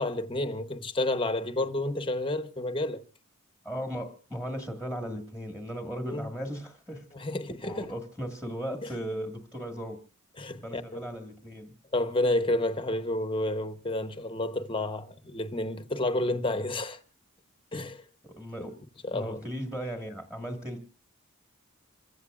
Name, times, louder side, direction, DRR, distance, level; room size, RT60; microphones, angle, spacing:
voice 1, 0.0-3.0 6.0-6.3 7.1-7.9 10.4-11.1 11.9-17.0 17.7-18.0 19.0-19.4, left 1 dB, 25° left, 0.9 m, -30 dB
voice 2, 3.6-7.1 7.6-10.0 10.6-11.7 18.2-18.8 19.1-20.8, equal, 5° right, 1.6 m, -37 dB
28.0 x 15.5 x 2.4 m
head